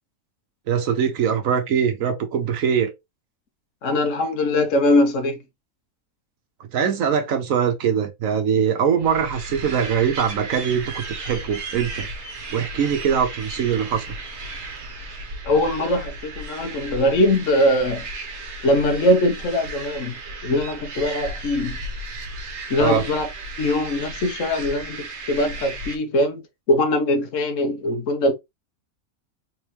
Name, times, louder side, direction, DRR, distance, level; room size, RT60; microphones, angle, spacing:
voice 1, 0.7-2.9 6.7-12.1 12.5-14.1 22.8-23.1, right 7 dB, 75° right, 1.2 m, -22 dB
voice 2, 3.8-5.4 15.4-18.1 18.6-21.8 22.7-23.3 23.6-26.4 26.7-28.3, left 1 dB, 65° left, 1.3 m, -21 dB
sound 1, 9.0-26.0, right 2 dB, 55° right, 1.3 m, -35 dB
3.6 x 3.4 x 3.0 m
omnidirectional pair, 1.5 m